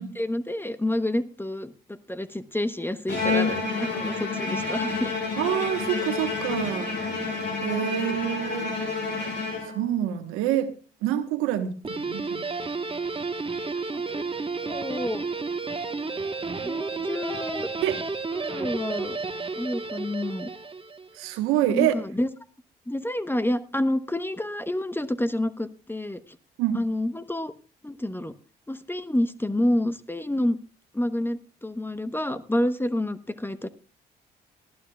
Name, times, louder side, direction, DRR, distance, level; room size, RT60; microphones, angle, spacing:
voice 1, 0.0-5.2 7.8-8.3 13.7-14.2 14.6-15.3 16.6-17.7 18.3-19.2 19.6-20.5 21.7-22.3 22.9-26.2 26.7-27.5 27.8-28.3 28.7-30.6 30.9-33.7, left 1 dB, 10° left, 13 dB, 0.9 m, -29 dB
Bowed string instrument, 3.1-10.0, left 3 dB, 55° left, 5.1 m, -29 dB
voice 2, 5.4-6.9 7.6-8.7 9.7-10.7 11.0-12.5 17.8-18.0 21.1-21.9 26.6-26.8, right 12 dB, 85° right, 9 dB, 1.2 m, -26 dB
Guitar, 11.8-21.2, right 4 dB, 25° right, 1.2 m, -32 dB
19.5 x 12.0 x 2.3 m, 0.36 s
hypercardioid pair, 50°, 21 cm